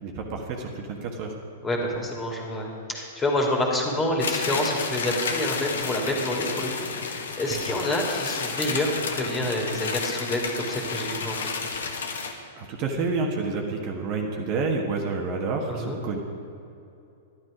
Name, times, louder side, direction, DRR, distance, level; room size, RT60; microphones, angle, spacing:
voice 1, 0.0-1.3 12.6-16.2, right 4 dB, 40° right, 1 dB, 1.5 m, -29 dB
voice 2, 1.6-11.8 15.7-16.0, left 1 dB, 15° left, 0 dB, 2.5 m, -28 dB
sound 1, 4.2-12.3, left 5 dB, 70° left, 1.3 m, -31 dB
12.0 x 11.5 x 5.1 m, 2.7 s
figure-of-eight pair, 105°, 0 cm